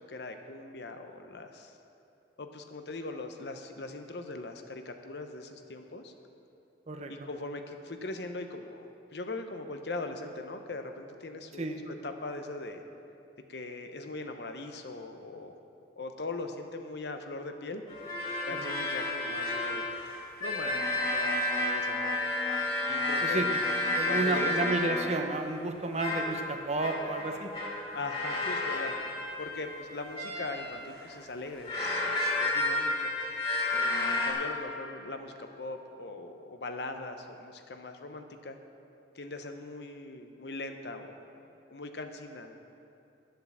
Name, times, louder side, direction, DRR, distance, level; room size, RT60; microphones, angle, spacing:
voice 1, 0.0-1.7 2.4-6.1 7.1-12.8 13.5-15.5 16.0-17.8 18.4-19.9 20.4-22.3 22.9-23.4 24.0-25.1 27.9-28.9 29.4-33.1 33.7-38.6 39.1-41.2 41.7-42.6, left 2 dB, 65° left, 6 dB, 0.8 m, -40 dB
sound 1, 17.9-25.2 26.0-26.4 26.8-30.9 31.5-34.3, left 2 dB, 30° left, 2.7 m, -31 dB
voice 2, 24.0-27.5, right 2 dB, 40° right, 5 dB, 0.8 m, -31 dB
11.0 x 7.7 x 7.2 m, 2.7 s
head